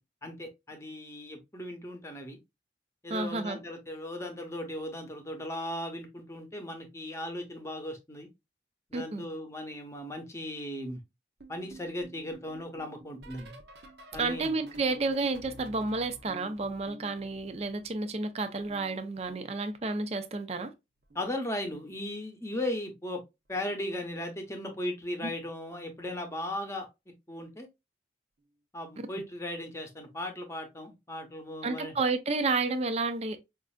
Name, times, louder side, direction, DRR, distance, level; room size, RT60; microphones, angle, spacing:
voice 1, 0.2-2.4 3.0-8.3 8.9-11.0 11.5-13.5 14.1-14.5 21.1-23.2 23.5-26.9 27.3-27.7 28.7-32.0, left 1 dB, 15° left, 0.8 m, -37 dB
voice 2, 3.1-3.6 8.9-9.2 14.2-20.7 31.6-33.4, right 3 dB, 35° right, 0.4 m, -31 dB
sound 1, 11.4-18.2 18.4-20.0 21.0-21.4 21.6-22.0 23.5-23.8 24.1-24.4 26.0-26.1, right 1 dB, 65° right, 0.7 m, -50 dB
5.2 x 2.5 x 2.3 m
head